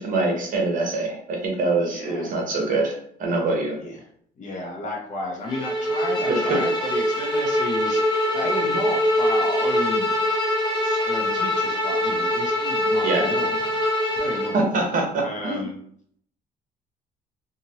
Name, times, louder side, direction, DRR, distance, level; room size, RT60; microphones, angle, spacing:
voice 1, 0.0-3.8 6.3-6.6 13.0-13.3 14.5-15.6, right 2 dB, 50° right, 1 dB, 1.0 m, -24 dB
voice 2, 1.9-2.4 3.8-4.1 4.4-10.1 10.8-13.7 14.0-14.7 15.2-15.8, left 2 dB, 45° left, 0 dB, 1.0 m, -33 dB
Bowed string instrument, 5.5-14.6, left 1 dB, 25° left, 0.8 m, -23 dB
2.9 x 2.6 x 2.8 m, 0.63 s
cardioid pair, 110°, 17 cm